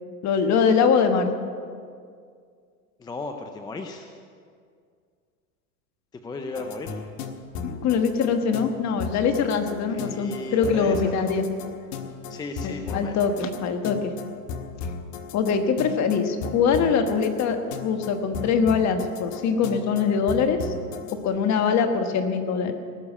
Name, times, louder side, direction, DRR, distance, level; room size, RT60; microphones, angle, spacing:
voice 1, 0.2-1.3 7.6-11.4 12.6-14.1 15.3-20.7 21.2-22.7, left 6 dB, 35° left, 7 dB, 1.4 m, -23 dB
voice 2, 3.0-4.2 6.2-7.0 9.9-11.2 12.3-13.2, left 3 dB, 10° left, 5 dB, 0.5 m, -35 dB
sound 1, 6.6-21.2, left 5 dB, 65° left, 1.6 m, -36 dB
18.5 x 7.0 x 8.4 m, 2.1 s
supercardioid pair, 125°, 48 cm